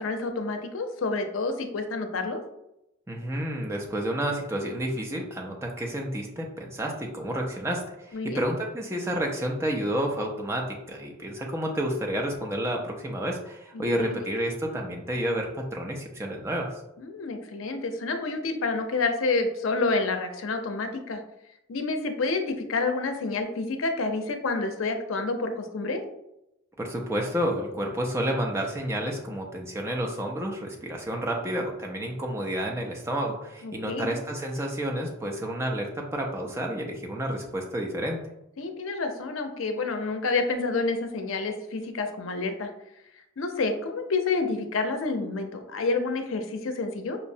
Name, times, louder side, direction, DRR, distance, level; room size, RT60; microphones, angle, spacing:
voice 1, 0.0-2.4 8.1-8.4 13.7-14.2 17.0-21.2 21.7-26.0 33.6-34.1 38.6-42.7 43.4-47.2, left 3 dB, 80° left, 6 dB, 0.5 m, -29 dB
voice 2, 3.1-16.7 26.8-38.2, equal, 15° right, 0 dB, 0.5 m, -30 dB
5.6 x 2.0 x 2.6 m, 0.86 s
head